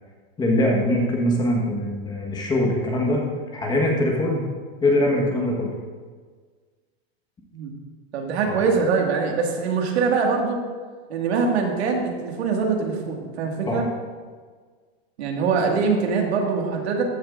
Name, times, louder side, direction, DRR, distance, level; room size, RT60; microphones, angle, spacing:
voice 1, 0.4-3.2 3.5-4.5 4.8-5.7 8.5-8.6 13.7-13.8, left 1 dB, 15° left, -1 dB, 1.3 m, -22 dB
voice 2, 8.1-10.6 11.1-13.9 15.2-17.0, right 5 dB, 85° right, 1 dB, 2.0 m, -23 dB
14.5 x 8.7 x 2.5 m, 1.5 s
supercardioid pair, 160°, 32 cm